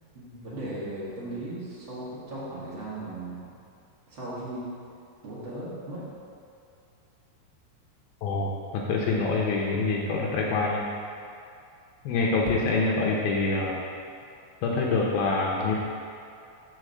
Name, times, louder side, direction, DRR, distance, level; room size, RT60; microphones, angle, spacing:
voice 1, 0.1-3.5 4.1-4.7 5.2-6.0, right 1 dB, 75° right, -10 dB, 1.0 m, -37 dB
voice 2, 8.2-10.9 12.1-13.8 14.6-15.8, left 3 dB, 90° left, -2 dB, 2.2 m, -26 dB
6.4 x 4.2 x 6.2 m, 2.4 s
omnidirectional pair, 5.0 m